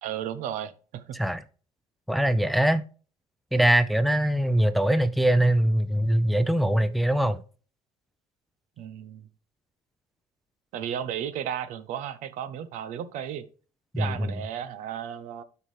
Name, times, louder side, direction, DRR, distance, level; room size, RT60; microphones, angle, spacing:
voice 1, 0.0-1.2 8.8-9.3 10.7-13.5 14.0-15.4, right 9 dB, 75° right, 0.9 m, -34 dB
voice 2, 2.1-2.8 3.5-7.4 13.9-14.3, right 1 dB, ahead, 0.6 m, -22 dB
12.0 x 4.7 x 3.3 m
cardioid pair, 95°, 13 cm